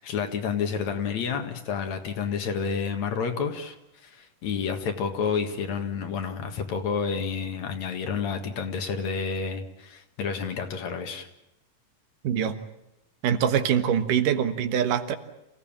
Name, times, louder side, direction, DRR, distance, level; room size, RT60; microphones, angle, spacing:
voice 1, 0.0-11.3, left 6 dB, 60° left, 6 dB, 2.9 m, -30 dB
voice 2, 12.2-12.6 13.2-15.1, right 8 dB, 85° right, 9 dB, 3.0 m, -24 dB
27.5 x 16.5 x 8.9 m, 0.92 s
omnidirectional pair, 3.7 m